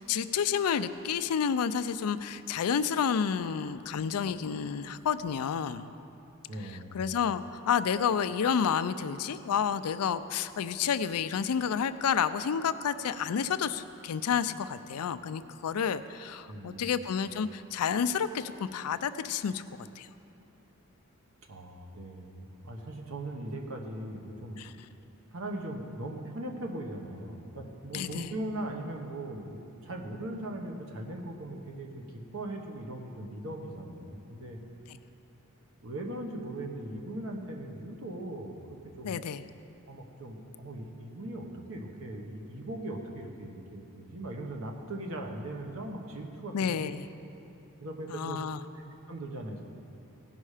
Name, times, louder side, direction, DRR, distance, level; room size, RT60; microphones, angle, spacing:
voice 1, 0.0-5.9 6.9-19.6 20.0-20.1 24.6-24.7 27.9-28.3 39.0-39.4 46.5-47.1 48.1-48.6, left 7 dB, 85° left, 12 dB, 0.4 m, -30 dB
voice 2, 6.5-7.1 16.5-16.8 21.5-24.6 25.3-34.6 35.8-38.5 39.0-39.2 39.9-46.8 47.2-47.3 47.8-48.4 49.1-49.6, right 1 dB, 70° right, 2 dB, 1.1 m, -39 dB
16.5 x 5.5 x 4.9 m, 2.9 s
head